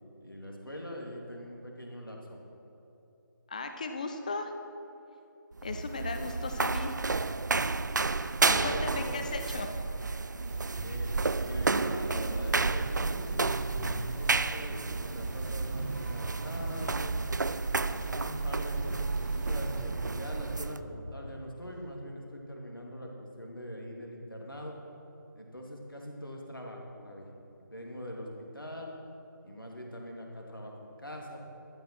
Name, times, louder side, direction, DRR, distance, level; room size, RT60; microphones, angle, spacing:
voice 1, 0.2-2.4 8.4-9.3 10.8-11.1 11.4-13.5 14.0-17.1 17.9-24.8 25.3-27.3 27.6-28.9 29.4-31.4, equal, 85° left, 0 dB, 2.8 m, -42 dB
voice 2, 3.5-4.5 5.6-7.0 8.2-9.7, left 3 dB, 20° left, 6 dB, 0.6 m, -37 dB
sound 1, 5.5-20.8, right 3 dB, 60° right, 0.4 m, -31 dB
sound 2, 7.5-10.3 10.8-14.5 14.8-18.4 18.8-19.3 19.7-22.0, equal, 5° right, 1.3 m, -46 dB
sound 3, 10.4-19.8, right 1 dB, 30° right, 1.3 m, -51 dB
13.0 x 9.3 x 6.0 m, 2.9 s
figure-of-eight pair, 160°, 11 cm